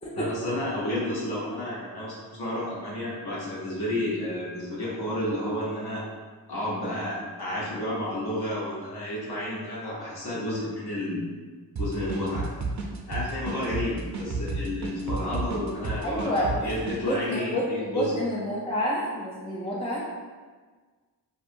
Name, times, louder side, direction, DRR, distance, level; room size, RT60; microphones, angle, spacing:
voice 1, 0.1-6.0 6.5-11.3 11.8-12.5 13.1-16.3 16.6-18.1, left 1 dB, 65° left, -7 dB, 1.0 m, -31 dB
sound 1, 11.8-17.0, right 3 dB, 45° right, 0.4 m, -32 dB
voice 2, 16.0-16.7 17.0-20.0, left 1 dB, 15° left, -5 dB, 0.3 m, -29 dB
2.8 x 2.3 x 2.5 m, 1.4 s
wide cardioid pair, 90°, 41 cm